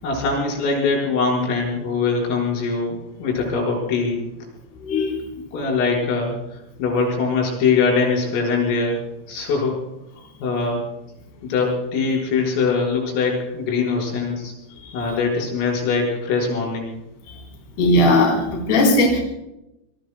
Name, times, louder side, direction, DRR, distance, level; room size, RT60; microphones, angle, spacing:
voice 1, 0.0-4.2 5.5-9.0 9.3-9.8 10.4-10.8 11.4-14.5 14.9-16.9, left 4 dB, 80° left, -1 dB, 7.8 m, -22 dB
voice 2, 4.8-5.2 14.8-14.9 17.8-19.2, left 1 dB, 55° left, 0 dB, 5.7 m, -18 dB
27.5 x 22.0 x 2.2 m, 0.89 s
omnidirectional pair, 5.8 m